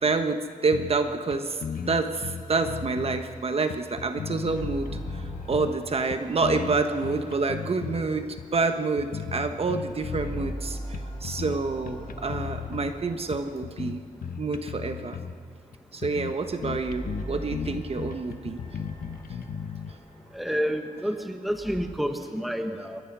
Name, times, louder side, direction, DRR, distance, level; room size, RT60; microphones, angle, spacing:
voice 1, 0.0-5.2 5.5-14.0 14.4-15.2 15.9-18.6, right 4 dB, 45° right, 8 dB, 1.2 m, -28 dB
sound 1, 0.7-1.4 1.6-3.3 3.7-5.8 6.1-8.0 8.4-8.6 9.0-10.6 10.9-11.6 11.9-12.9 13.3-15.4 15.7-15.8 16.0-16.3 16.6-19.9, left 7 dB, 75° left, 1.3 m, -36 dB
sound 2, 4.5-9.4 9.8-15.1 15.8-21.9, equal, 30° left, 7.4 m, -42 dB
voice 2, 20.3-23.0, equal, ahead, 6 dB, 1.4 m, -29 dB
27.5 x 22.0 x 6.1 m, 2.6 s
wide cardioid pair, 175°, 15 cm